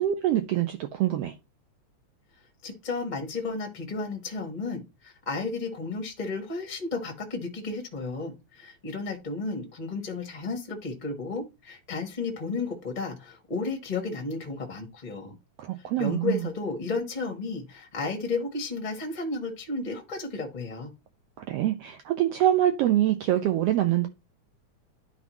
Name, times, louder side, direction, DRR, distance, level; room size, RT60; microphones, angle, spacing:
voice 1, 0.0-1.3 15.6-16.4 21.4-24.1, right 12 dB, 90° right, 1.4 m, -25 dB
voice 2, 2.6-15.3 15.8-20.9, left 3 dB, 45° left, 0.5 m, -33 dB
12.0 x 4.2 x 3.0 m
omnidirectional pair, 3.4 m